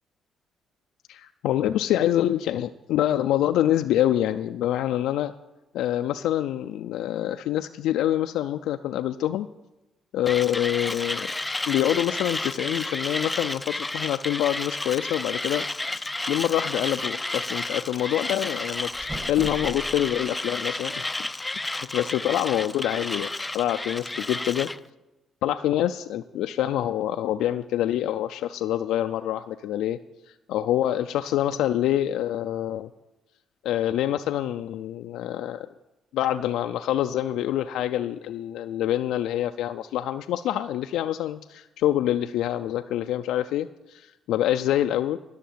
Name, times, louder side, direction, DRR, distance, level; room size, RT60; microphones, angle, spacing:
voice 1, 1.1-5.3 5.7-9.5 10.1-11.3 11.7-15.7 15.9-21.3 21.6-24.7 25.4-30.0 30.5-32.9 33.6-35.7 36.1-45.2, left 12 dB, 90° left, 8 dB, 0.3 m, -26 dB
Mechanisms, 10.3-24.8, left 2 dB, 15° left, 0.4 m, -31 dB
sound 1, 18.7-20.3, right 1 dB, 25° right, 2.1 m, -39 dB
11.5 x 6.5 x 8.5 m, 0.99 s
cardioid pair, 90°, 0 cm